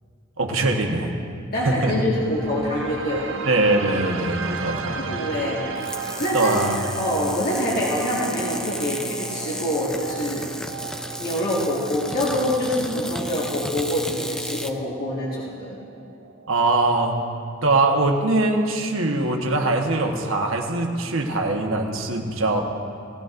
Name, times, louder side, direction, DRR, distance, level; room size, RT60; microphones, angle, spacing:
voice 1, 0.4-1.2 1.6-2.0 3.5-5.2 6.3-6.8 16.5-17.2 17.6-22.6, right 2 dB, 90° right, 2 dB, 1.3 m, -22 dB
voice 2, 1.5-3.4 5.0-5.8 6.2-6.5 6.8-10.5 11.2-15.8, left 1 dB, 50° left, -7 dB, 1.8 m, -25 dB
sound 1, 1.7-17.7, right 5 dB, 70° right, 0.7 m, -36 dB
sound 2, 5.8-14.7, equal, 5° left, 0.5 m, -33 dB
19.0 x 15.0 x 2.6 m, 2.4 s
head